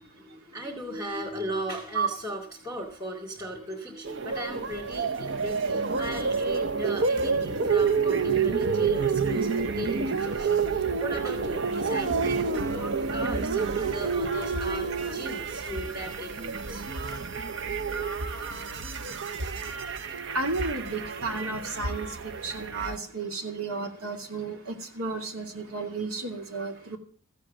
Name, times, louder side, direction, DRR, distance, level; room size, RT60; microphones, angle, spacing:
voice 1, 0.0-16.8, equal, 15° right, -2 dB, 2.5 m, -37 dB
sound 1, 4.0-23.0, right 5 dB, 55° right, 0.9 m, -29 dB
voice 2, 20.3-27.0, right 3 dB, 80° right, 3 dB, 2.6 m, -32 dB
15.0 x 8.2 x 7.5 m, 0.44 s
head